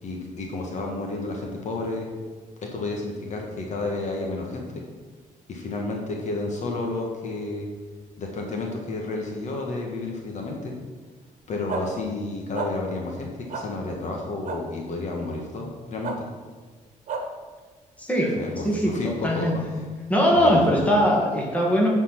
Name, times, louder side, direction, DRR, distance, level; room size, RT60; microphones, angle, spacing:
voice 1, 0.0-2.1 2.6-4.8 5.5-7.7 8.2-10.8 11.5-16.3 18.4-19.5 20.3-20.9, left 2 dB, 60° left, 1 dB, 1.5 m, -31 dB
sound 1, 11.7-11.8 12.5-12.7 13.5-13.6 14.4-14.6 16.0-16.2 17.1-17.2, right 5 dB, 65° right, 1.3 m, -30 dB
voice 2, 18.0-18.3 18.6-19.6 20.1-21.9, equal, 10° left, -2 dB, 2.0 m, -21 dB
10.0 x 4.5 x 5.9 m, 1.4 s
cardioid pair, 120°, 14 cm